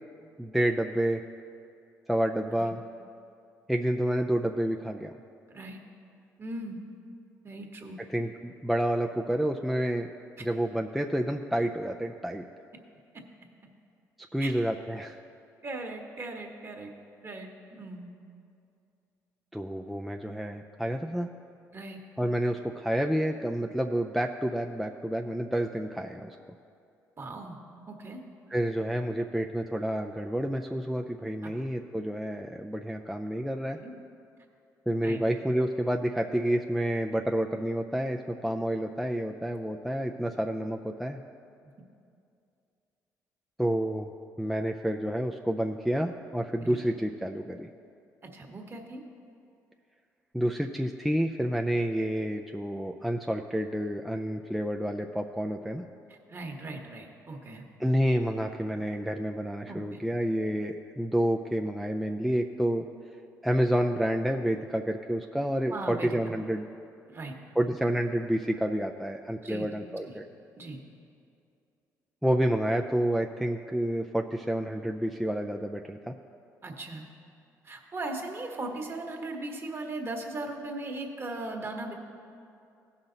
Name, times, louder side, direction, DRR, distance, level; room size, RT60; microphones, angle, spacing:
voice 1, 0.4-1.2 2.1-2.8 3.7-5.1 8.1-10.1 10.4-12.4 14.3-15.2 19.5-21.3 22.2-26.4 28.5-33.8 34.9-41.2 43.6-44.1 44.4-47.7 50.3-55.8 57.8-62.9 63.4-66.7 67.6-70.3 72.2-76.1, equal, ahead, 2 dB, 0.4 m, -29 dB
voice 2, 5.5-5.8 6.4-6.8 7.4-8.0 10.4-10.5 13.1-13.2 14.4-14.6 15.6-16.9 17.2-18.1 21.7-22.0 27.2-27.6 27.9-28.2 31.4-31.5 33.7-33.9 35.0-35.2 46.6-46.8 48.3-49.0 56.1-57.6 59.7-60.0 65.7-66.4 67.1-67.3 69.4-69.7 70.0-70.2 70.6-70.8 76.6-77.1 77.6-81.9, right 2 dB, 35° right, 2 dB, 1.4 m, -38 dB
16.0 x 5.7 x 4.0 m, 2.5 s
supercardioid pair, 70°, 7 cm